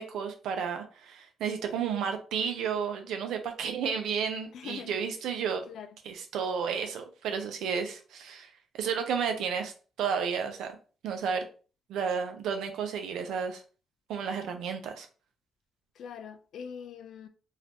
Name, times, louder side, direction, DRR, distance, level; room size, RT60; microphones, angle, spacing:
voice 1, 0.0-5.6 6.1-8.5 8.8-9.7 10.0-10.8 11.0-11.4 11.9-13.6 14.1-15.1, right 6 dB, 80° right, 0.7 m, -32 dB
voice 2, 4.5-5.0 5.7-5.9 15.9-17.3, left 7 dB, 70° left, 0.5 m, -43 dB
4.0 x 2.6 x 2.9 m
cardioid pair, 90°, 0 cm